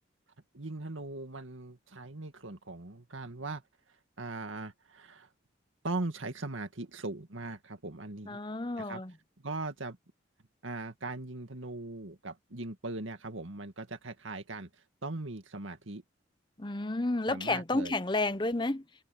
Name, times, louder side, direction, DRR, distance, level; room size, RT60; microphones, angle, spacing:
voice 1, 0.5-3.6 4.2-5.3 5.8-8.4 8.8-9.0 9.4-10.0 10.6-14.7 15.0-16.0 17.3-17.9, right 2 dB, 90° right, 2.1 m, -39 dB
voice 2, 8.3-9.1 16.6-18.8, left 2 dB, 25° left, 0.9 m, -31 dB
head